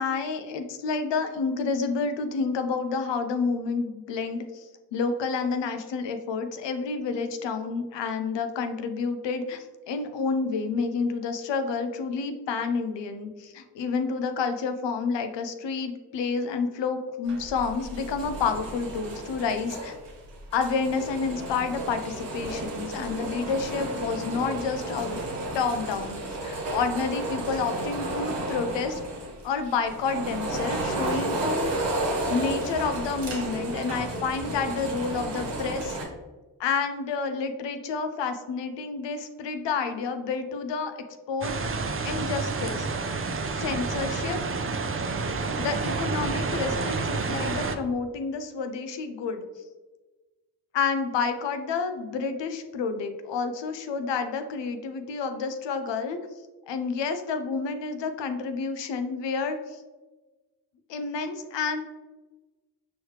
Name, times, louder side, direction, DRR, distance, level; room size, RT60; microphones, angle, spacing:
voice 1, 0.0-19.9 20.5-25.2 25.5-29.0 29.4-31.7 32.3-36.0 36.6-41.0 41.3-41.7 42.0-42.9 43.5-44.4 45.6-49.5 50.7-56.2 56.7-59.8 60.9-61.9, left 5 dB, 80° left, 8 dB, 0.5 m, -29 dB
sound 1, 17.3-36.0, right 2 dB, 80° right, 1.1 m, -32 dB
sound 2, 41.4-47.8, right 4 dB, 30° right, 0.5 m, -29 dB
4.6 x 3.1 x 3.2 m, 1.2 s
cardioid pair, 45°, 42 cm